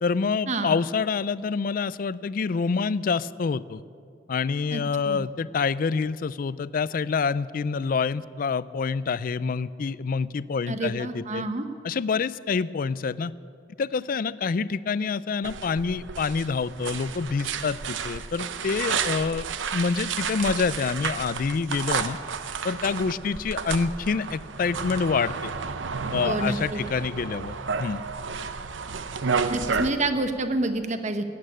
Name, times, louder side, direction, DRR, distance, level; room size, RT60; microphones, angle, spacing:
voice 1, 0.0-3.8 4.3-11.4 11.8-13.3 13.8-19.5 19.7-22.2 22.6-25.5 26.1-28.0, left 5 dB, 50° left, 18 dB, 0.4 m, -27 dB
voice 2, 4.7-5.2 10.7-11.7 26.2-26.8 29.5-31.2, right 2 dB, 40° right, 8 dB, 1.1 m, -28 dB
sound 1, 15.4-29.9, right 5 dB, 90° right, 0.8 m, -31 dB
15.5 x 8.7 x 9.9 m, 2.4 s
head